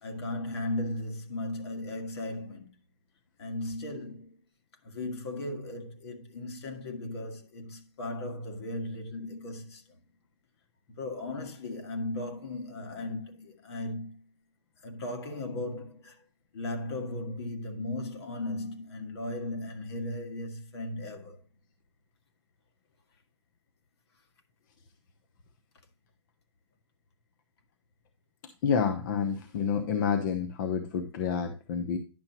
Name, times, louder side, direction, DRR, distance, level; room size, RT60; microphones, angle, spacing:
voice 1, 0.0-2.7 3.4-4.4 4.8-9.8 10.9-14.2 14.8-16.2 16.5-21.4, left 2 dB, 60° left, 2.0 m, -36 dB
voice 2, 28.6-32.0, left 6 dB, 40° left, 0.8 m, -29 dB
10.5 x 7.0 x 2.9 m
hypercardioid pair, 160°, 15 cm